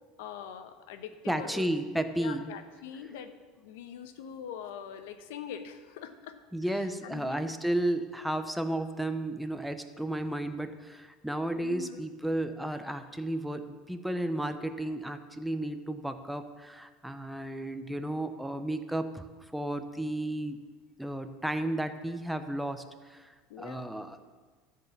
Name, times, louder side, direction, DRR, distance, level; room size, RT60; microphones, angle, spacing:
voice 1, 0.2-1.7 2.2-6.4 6.7-7.5 11.5-12.0 23.5-23.9, left 8 dB, 85° left, 9 dB, 0.9 m, -43 dB
voice 2, 1.3-2.5 6.5-19.2 19.5-20.6 21.0-24.2, right 1 dB, ahead, 8 dB, 0.6 m, -33 dB
13.0 x 4.7 x 7.2 m, 1.4 s
supercardioid pair, 145°, 0 cm